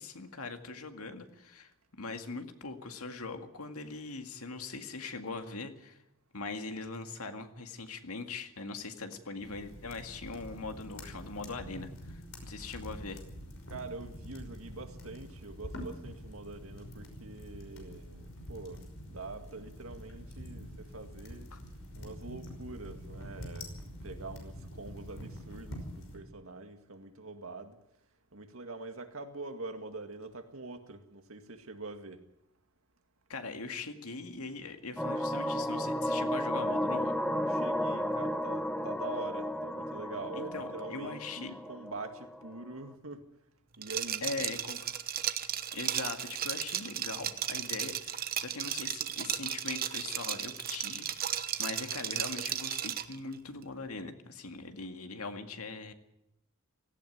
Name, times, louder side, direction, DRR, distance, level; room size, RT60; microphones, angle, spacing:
voice 1, 0.0-1.7 2.0-6.0 6.3-13.2 21.5-21.6 33.3-37.2 40.4-41.6 44.2-44.9 45.4-55.9, left 3 dB, 85° left, 2.0 m, -41 dB
sound 1, 9.4-26.2, equal, 65° left, 5.5 m, -46 dB
voice 2, 13.7-21.5 22.0-27.8 28.3-32.2 37.5-43.3 43.8-44.3, right 3 dB, 65° right, 2.0 m, -44 dB
sound 2, 35.0-42.5, equal, 5° left, 0.9 m, -33 dB
Liquid, 43.8-53.2, right 10 dB, 45° right, 1.0 m, -35 dB
17.5 x 16.0 x 9.4 m
head